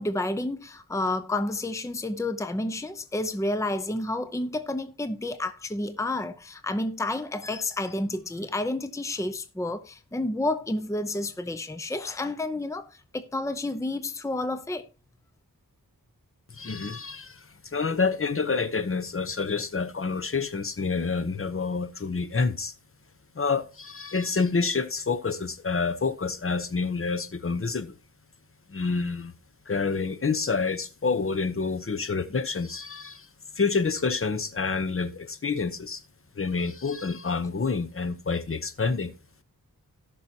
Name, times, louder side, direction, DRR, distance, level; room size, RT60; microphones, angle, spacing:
voice 1, 0.0-14.9, left 2 dB, 10° left, 0.7 m, -30 dB
voice 2, 16.5-22.7 23.3-28.0 28.7-29.3 29.7-33.3 33.6-36.0 36.3-39.1, left 4 dB, 40° left, 1.0 m, -28 dB
17.0 x 6.1 x 2.9 m
wide cardioid pair, 85°, 35 cm